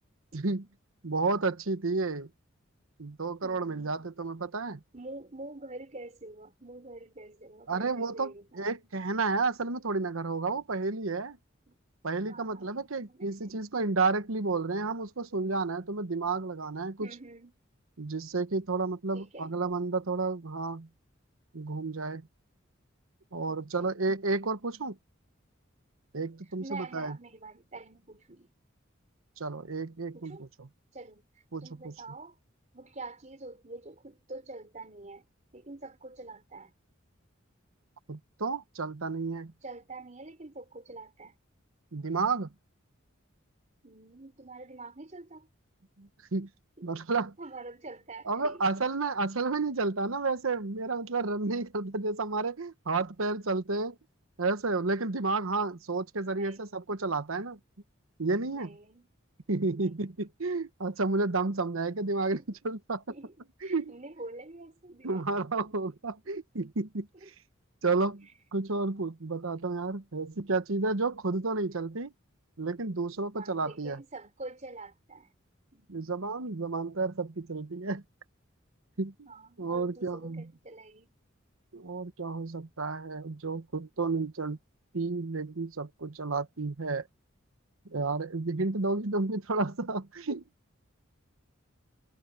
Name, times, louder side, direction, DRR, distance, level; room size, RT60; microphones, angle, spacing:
voice 1, 0.3-0.7 1.0-2.3 3.0-4.8 7.7-11.4 12.0-17.1 18.0-20.9 21.5-22.2 23.3-24.9 26.1-27.2 29.4-30.4 31.5-31.9 38.1-39.5 41.9-42.5 46.0-46.5 46.8-47.3 48.3-54.0 54.4-57.6 58.2-58.7 59.5-63.0 63.7-63.9 65.0-67.1 67.8-68.3 68.5-72.1 72.6-74.0 75.9-78.0 79.0-79.3 79.6-80.5 81.7-84.6 84.9-87.1 87.9-90.4, right 3 dB, 85° right, 1.1 m, -31 dB
voice 2, 4.9-8.7 11.7-11.8 12.3-12.7 12.9-13.5 17.0-17.5 19.1-19.5 23.5-24.0 26.6-28.5 30.1-30.4 30.9-31.3 31.6-32.4 32.7-35.3 35.5-36.7 39.6-41.4 43.8-45.5 46.8-46.9 47.4-48.6 56.3-56.7 58.5-59.1 59.7-60.0 62.3-62.5 63.1-63.4 63.6-65.3 67.1-67.3 73.3-75.3 75.7-76.1 79.3-81.1, right 2 dB, 35° right, 4.0 m, -46 dB
head